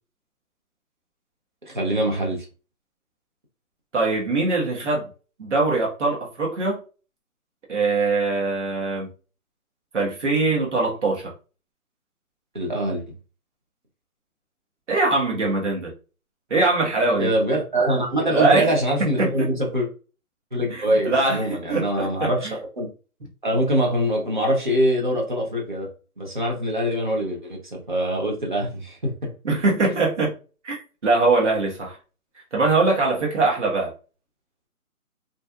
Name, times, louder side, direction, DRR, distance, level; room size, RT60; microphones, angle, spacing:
voice 1, 1.7-2.5 12.5-13.1 17.2-19.9 20.5-22.5 22.8-22.9 23.4-25.9 26.2-29.3 29.9-30.0, equal, 35° right, -1 dB, 0.7 m, -24 dB
voice 2, 3.9-5.1 5.4-6.8 7.7-9.1 9.9-11.3 14.9-15.9 16.5-17.3 18.3-18.7 19.2-19.5 20.7-22.6 29.4-30.3 30.6-32.0 32.5-33.9, right 3 dB, 55° right, -2 dB, 1.2 m, -22 dB
2.7 x 2.6 x 2.3 m, 0.35 s
hypercardioid pair, 165°, 44 cm